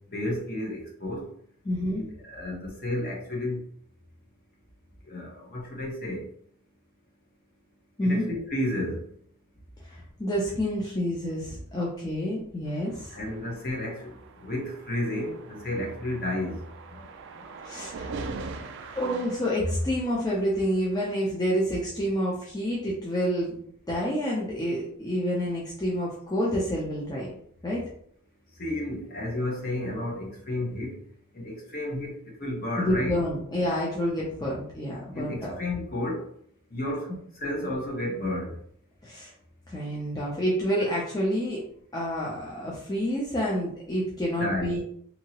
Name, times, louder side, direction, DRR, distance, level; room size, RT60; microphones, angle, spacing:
voice 1, 0.1-1.2 2.2-3.6 5.1-6.2 8.0-9.1 13.1-14.1 14.4-16.6 16.9-17.0 28.6-31.0 31.3-33.1 35.1-36.2 36.7-37.1 37.4-38.5 44.4-44.7, left 1 dB, 40° left, -1 dB, 0.9 m, -31 dB
voice 2, 1.6-2.0 8.0-8.2 9.8-13.2 17.6-18.2 18.5-23.6 23.9-27.3 27.6-27.8 32.8-35.6 39.0-39.3 39.7-41.6 41.9-44.8, equal, 20° left, -5 dB, 0.5 m, -28 dB
sound 1, 12.7-20.3, right 4 dB, 55° right, 0.3 m, -41 dB
2.8 x 2.7 x 2.8 m, 0.65 s
head